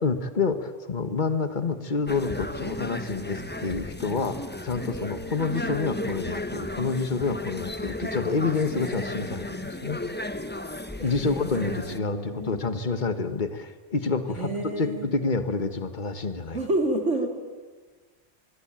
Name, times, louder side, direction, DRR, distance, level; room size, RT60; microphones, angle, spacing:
voice 1, 0.0-4.4 4.6-10.0 11.0-14.5 14.8-16.6, left 4 dB, 40° left, 10 dB, 1.7 m, -28 dB
sound 1, 2.1-12.0, left 1 dB, 10° left, 1.0 m, -34 dB
voice 2, 11.0-12.6 14.3-15.1 16.5-17.3, right 1 dB, 75° right, 3 dB, 3.8 m, -30 dB
25.0 x 22.0 x 9.0 m, 1.4 s
omnidirectional pair, 1.3 m